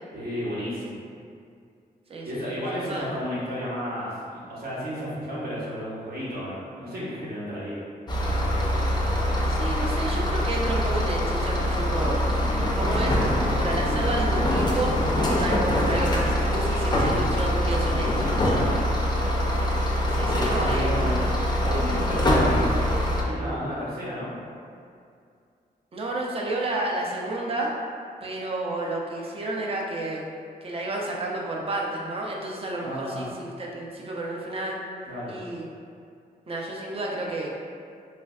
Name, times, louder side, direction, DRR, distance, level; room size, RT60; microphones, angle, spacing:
voice 1, 0.1-1.0 2.2-7.8 18.5-18.8 20.3-21.2 21.6-24.3 32.8-33.2 35.0-35.3, equal, 70° right, -8 dB, 0.9 m, -32 dB
voice 2, 2.1-3.1 9.5-12.2 12.6-13.2 13.6-14.9 15.3-18.3 20.1-21.2 25.9-27.7 28.2-30.2 30.6-34.8 35.3-35.7 36.5-37.5, right 2 dB, 35° right, -2 dB, 0.4 m, -31 dB
sound 1, 8.1-23.2, left 1 dB, 25° left, 0.4 m, -24 dB
3.2 x 2.5 x 2.3 m, 2.4 s
wide cardioid pair, 115°, 16 cm